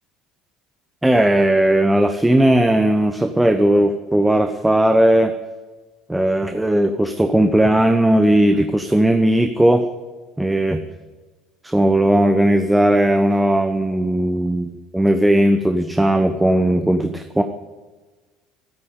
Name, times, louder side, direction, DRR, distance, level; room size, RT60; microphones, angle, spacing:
voice 1, 1.0-5.3 6.1-9.9 10.4-10.8 11.6-17.4, right 1 dB, 5° right, 7 dB, 1.0 m, -17 dB
13.5 x 10.0 x 10.0 m, 1.3 s
figure-of-eight pair, 60°, 0 cm